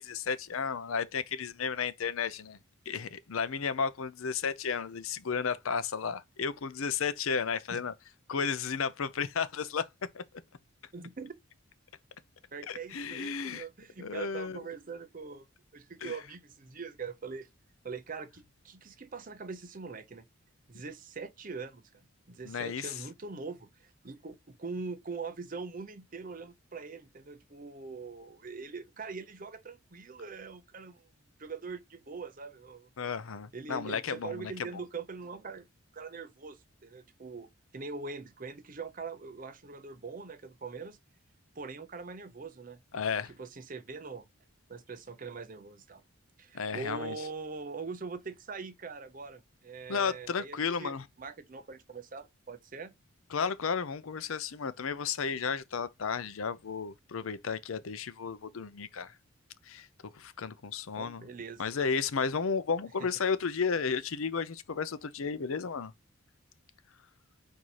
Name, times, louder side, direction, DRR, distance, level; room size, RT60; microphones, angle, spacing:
voice 1, 0.0-2.6 2.9-7.9 8.3-9.9 10.1-10.2 12.7-13.6 14.0-14.6 16.0-16.1 22.4-22.9 33.0-34.5 42.9-43.3 46.5-47.1 49.9-51.0 53.3-59.1 59.7-59.9 60.1-61.3 61.6-65.9, left 6 dB, 75° left, 0.6 m, -33 dB
voice 2, 10.9-11.3 12.5-15.5 15.7-17.5 17.8-20.3 20.7-31.1 31.4-32.9 33.5-35.7 35.9-41.0 41.6-42.8 43.4-44.2 44.7-46.0 46.4-52.9 61.0-61.7 63.0-63.1, right 4 dB, 40° right, 0.6 m, -42 dB
4.7 x 2.7 x 4.0 m
head